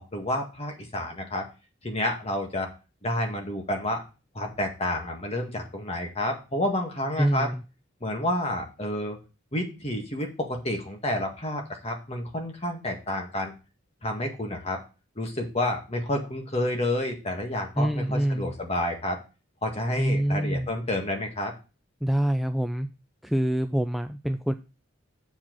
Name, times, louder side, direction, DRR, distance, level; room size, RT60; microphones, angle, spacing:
voice 1, 0.0-1.5 1.8-2.7 3.0-4.0 4.3-7.5 8.0-9.2 9.5-13.5 14.0-14.8 15.2-19.2 19.6-21.5, left 1 dB, 30° left, 3 dB, 1.9 m, -29 dB
voice 2, 7.2-7.6 17.8-18.5 20.0-20.7 22.0-22.9 23.2-24.5, right 1 dB, ahead, 7 dB, 0.3 m, -26 dB
7.2 x 4.7 x 6.1 m, 0.31 s
head